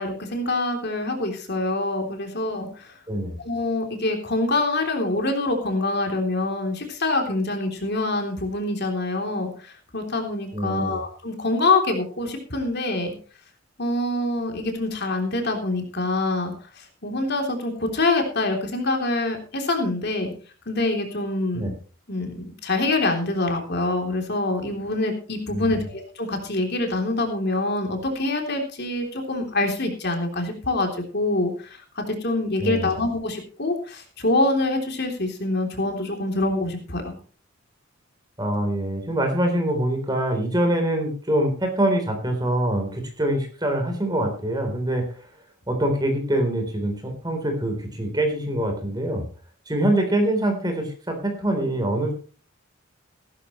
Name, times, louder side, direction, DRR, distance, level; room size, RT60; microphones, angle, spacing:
voice 1, 0.0-2.9 3.4-13.1 13.8-20.3 20.7-21.7 22.1-37.2, left 2 dB, 50° left, 3 dB, 3.4 m, -25 dB
voice 2, 10.5-11.0 21.5-21.7 25.5-25.8 32.6-32.9 38.4-45.1 45.7-49.2 49.7-52.1, right 1 dB, 20° right, 4 dB, 3.8 m, -24 dB
16.5 x 13.5 x 3.2 m, 0.38 s
head